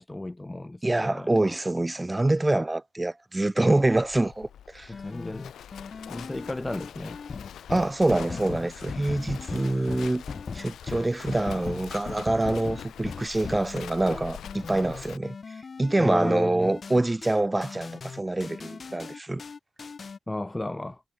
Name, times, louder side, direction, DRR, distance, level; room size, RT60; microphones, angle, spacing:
voice 1, 0.0-1.3 4.9-5.5 6.1-7.2 16.0-16.7 20.3-21.0, left 2 dB, 15° left, 3.2 m, -34 dB
voice 2, 0.8-4.9 7.7-10.2 10.5-19.4, right 2 dB, 15° right, 2.6 m, -26 dB
Livestock farm animals working animals, 3.8-15.2, left 9 dB, 65° left, 2.0 m, -44 dB
sound 1, 4.9-20.2, left 5 dB, 35° left, 3.4 m, -39 dB
cardioid pair, 90°, 0 cm